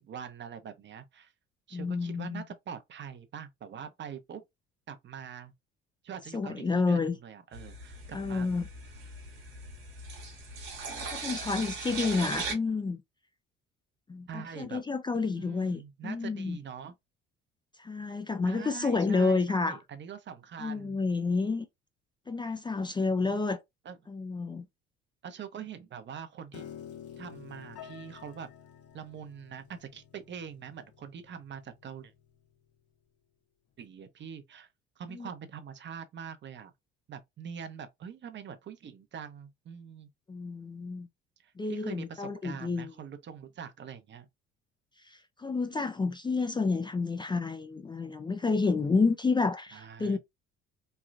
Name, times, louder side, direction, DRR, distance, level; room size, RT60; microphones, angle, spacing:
voice 1, 0.0-1.3 1.7-4.4 4.9-5.5 6.0-8.5 14.3-14.8 15.2-16.9 18.4-21.0 23.2-23.3 23.8-24.0 25.2-26.6 27.2-28.5 28.9-32.1 33.8-34.7 35.0-36.7 37.1-40.1 41.4-44.3 49.7-50.2, right 7 dB, 40° right, 0.6 m, -44 dB
voice 2, 1.7-2.4 6.3-7.1 8.1-8.6 10.9-13.0 14.1-16.6 17.8-19.8 20.6-21.7 22.3-23.6 24.1-24.7 35.1-35.3 40.3-41.1 41.6-42.9 45.0-50.2, left 4 dB, 15° left, 0.4 m, -30 dB
sound 1, 7.5-12.5, right 4 dB, 75° right, 1.1 m, -39 dB
Piano, 26.5-32.7, left 9 dB, 55° left, 0.8 m, -50 dB
3.1 x 2.3 x 2.5 m
hypercardioid pair, 60°, 29 cm